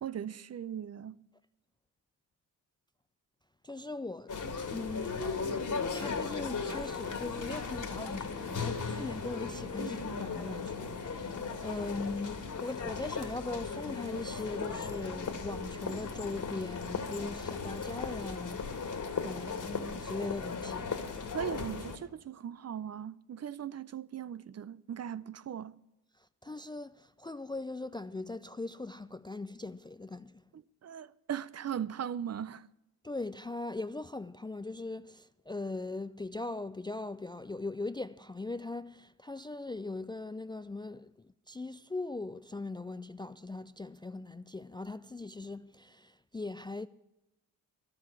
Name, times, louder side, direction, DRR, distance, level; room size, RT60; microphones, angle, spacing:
voice 1, 0.0-1.2 9.8-10.0 21.3-25.7 30.5-32.7, right 9 dB, 40° right, 0.6 m, -39 dB
voice 2, 3.6-21.0 26.2-30.4 33.0-41.2 41.5-46.9, left 2 dB, 10° left, 0.4 m, -40 dB
sound 1, 4.3-22.0, left 5 dB, 45° left, 2.2 m, -37 dB
12.5 x 7.6 x 9.6 m
supercardioid pair, 50°, 42 cm